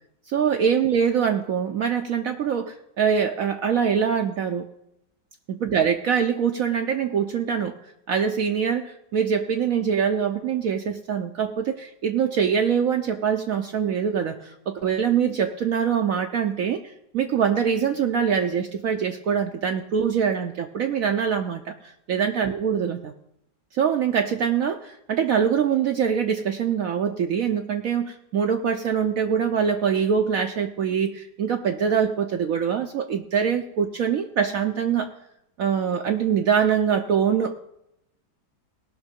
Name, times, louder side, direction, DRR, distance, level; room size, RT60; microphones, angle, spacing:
voice 1, 0.3-4.6 5.5-7.7 8.1-23.1 23.7-35.1 35.6-37.6, right 7 dB, 65° right, 5 dB, 1.0 m, -24 dB
18.0 x 6.1 x 5.3 m, 0.80 s
omnidirectional pair, 1.8 m